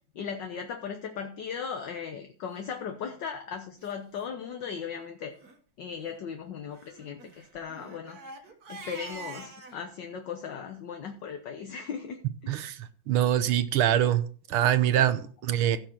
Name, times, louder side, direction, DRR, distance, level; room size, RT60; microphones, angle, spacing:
voice 1, 0.1-5.3 5.8-8.2 8.7-12.6, left 6 dB, 60° left, 6 dB, 1.6 m, -37 dB
Crying sobbing, 2.9-3.2 3.8-3.9 4.2-4.3 4.6-4.9 5.3-5.6 6.7-9.8, right 3 dB, 50° right, 1.8 m, -46 dB
voice 2, 12.5-12.8 13.1-14.2 14.5-15.8, right 11 dB, 80° right, 13 dB, 1.8 m, -24 dB
16.5 x 6.5 x 4.4 m, 0.42 s
omnidirectional pair, 2.4 m